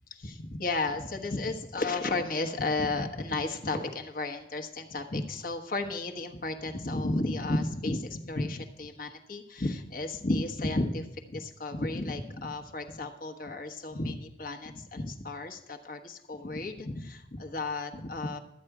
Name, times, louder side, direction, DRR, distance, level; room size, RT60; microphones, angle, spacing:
voice 1, 0.1-18.4, left 2 dB, 45° left, 4 dB, 1.2 m, -33 dB
13.0 x 9.1 x 4.8 m, 0.88 s
head